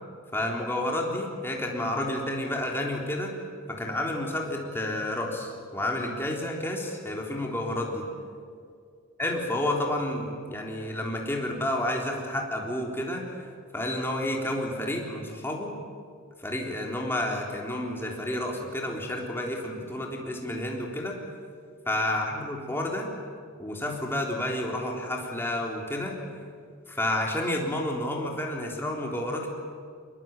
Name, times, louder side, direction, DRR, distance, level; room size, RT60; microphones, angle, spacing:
voice 1, 0.3-3.3 3.7-8.1 9.2-13.3 13.7-15.7 16.4-21.2 21.9-23.1 23.6-26.2 26.9-29.5, left 1 dB, 10° left, -1 dB, 3.7 m, -30 dB
24.0 x 21.5 x 9.0 m, 2.2 s
head